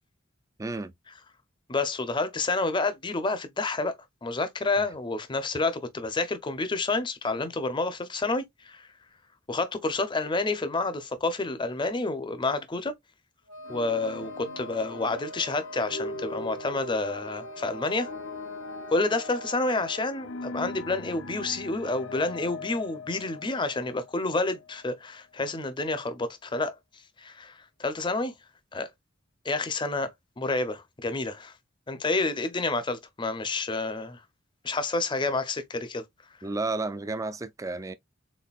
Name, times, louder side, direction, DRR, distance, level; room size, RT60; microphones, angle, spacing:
voice 1, 0.6-0.9 4.8-4.9 36.4-37.9, right 3 dB, 15° right, 0.3 m, -32 dB
voice 2, 1.7-3.9 4.2-8.9 9.5-12.9 13.7-18.1 18.9-26.8 27.2-28.3 28.7-28.9 29.4-30.1 30.4-31.5 31.9-34.2 34.6-36.0, left 3 dB, 25° left, 0.6 m, -29 dB
Wind instrument woodwind instrument, 13.5-20.2, right 1 dB, 70° right, 1.2 m, -44 dB
sound 1, 13.6-24.9, left 2 dB, 65° left, 0.6 m, -41 dB
4.2 x 3.8 x 2.3 m
head